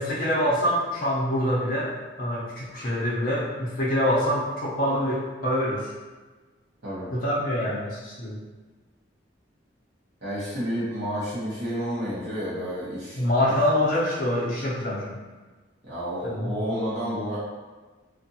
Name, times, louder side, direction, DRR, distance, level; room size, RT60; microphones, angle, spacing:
voice 1, 0.0-5.9 7.1-8.4 13.2-15.2 16.2-16.6, left 1 dB, 45° left, -6 dB, 0.6 m, -25 dB
voice 2, 10.2-13.2 13.5-13.6 15.8-17.4, equal, 75° right, -10 dB, 1.0 m, -30 dB
2.5 x 2.5 x 2.6 m, 1.3 s
head